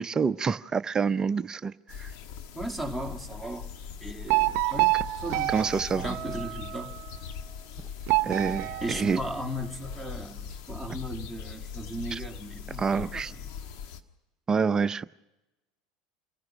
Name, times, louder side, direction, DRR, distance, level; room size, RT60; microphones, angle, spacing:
voice 1, 0.0-2.1 5.5-6.2 8.2-9.2 12.1-12.2 12.8-13.3 14.5-15.0, right 5 dB, 25° right, 0.6 m, -27 dB
sound 1, 1.9-14.0, left 7 dB, 65° left, 1.5 m, -41 dB
voice 2, 2.5-3.7 4.0-5.0 5.2-5.5 5.9-7.0 8.8-13.5, right 1 dB, ahead, 2.2 m, -37 dB
sound 2, 4.3-7.0 8.1-9.8, right 20 dB, 60° right, 0.7 m, -28 dB
27.0 x 16.0 x 6.2 m
hypercardioid pair, 90°, 3 cm